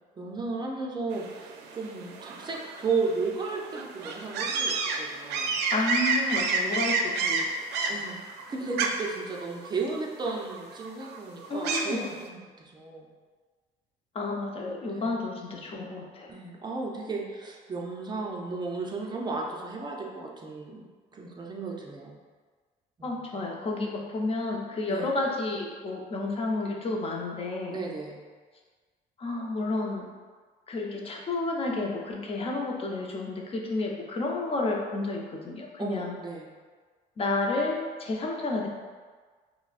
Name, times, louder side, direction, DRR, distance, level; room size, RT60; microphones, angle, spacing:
voice 1, 0.1-5.6 7.9-8.2 8.5-13.1 14.9-15.2 16.3-20.8 21.1-22.2 23.0-23.5 24.9-25.1 27.7-28.2 35.8-36.5, right 4 dB, 25° right, -1 dB, 0.5 m, -34 dB
sound 1, 1.1-12.1, right 4 dB, 80° right, 0.4 m, -30 dB
voice 2, 5.7-8.0 11.5-12.0 14.1-16.3 23.0-27.8 29.2-30.1 30.7-36.1 37.2-38.7, left 2 dB, 35° left, 0 dB, 0.6 m, -31 dB
5.6 x 2.1 x 2.4 m, 1.5 s
cardioid pair, 110°, 17 cm